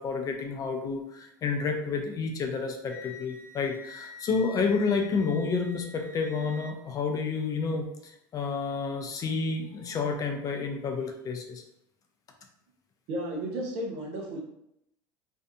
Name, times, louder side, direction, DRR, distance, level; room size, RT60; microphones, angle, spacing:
voice 1, 0.0-11.6, left 4 dB, 35° left, 3 dB, 0.5 m, -30 dB
Wind instrument woodwind instrument, 2.8-6.7, left 4 dB, 30° right, 1.2 m, -47 dB
voice 2, 13.1-14.4, right 1 dB, 60° right, 1 dB, 0.7 m, -33 dB
2.6 x 2.4 x 2.2 m, 0.79 s
supercardioid pair, 95°, 10 cm